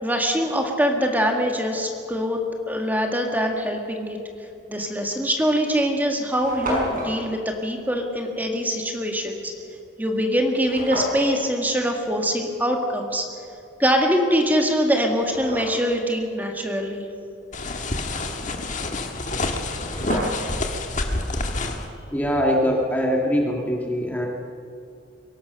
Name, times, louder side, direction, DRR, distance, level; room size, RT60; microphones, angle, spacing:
voice 1, 0.0-2.4 2.7-4.2 4.7-9.5 10.0-13.3 13.8-17.0, equal, 10° right, 2 dB, 1.9 m, -23 dB
sound 1, 4.9-5.0 5.7-5.8 6.0-6.1 6.3-7.2 10.6-11.3 14.2-14.3 14.8-16.0 19.3-19.4 19.6-20.6, equal, 45° right, 6.0 m, -30 dB
sound 2, 17.5-21.9, left 2 dB, 40° left, 1.6 m, -27 dB
voice 2, 22.1-24.3, equal, 10° left, -1 dB, 1.7 m, -22 dB
23.5 x 17.5 x 6.6 m, 2.6 s
head